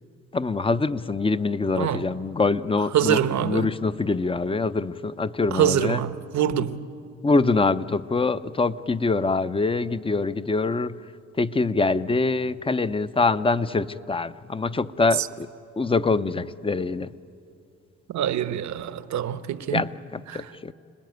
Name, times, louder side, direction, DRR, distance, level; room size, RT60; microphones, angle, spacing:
voice 1, 0.3-6.0 7.2-11.0 11.4-15.5 15.8-17.1 19.7-20.7, left 3 dB, 20° left, 0.7 m, -24 dB
voice 2, 2.9-3.7 5.5-6.8 15.2-15.3 18.1-19.9 20.3-20.5, right 10 dB, 70° right, 1.1 m, -25 dB
29.5 x 20.0 x 9.3 m
cardioid pair, 90°, 30 cm